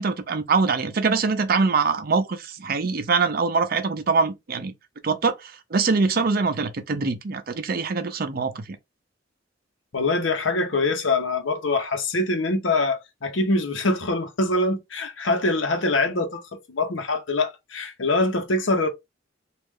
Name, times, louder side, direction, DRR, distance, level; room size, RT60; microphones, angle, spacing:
voice 1, 0.0-4.7 5.0-8.7, right 4 dB, 50° right, 0.6 m, -23 dB
voice 2, 9.9-16.4 16.7-18.9, left 2 dB, 80° left, 0.9 m, -24 dB
3.1 x 2.5 x 3.5 m
head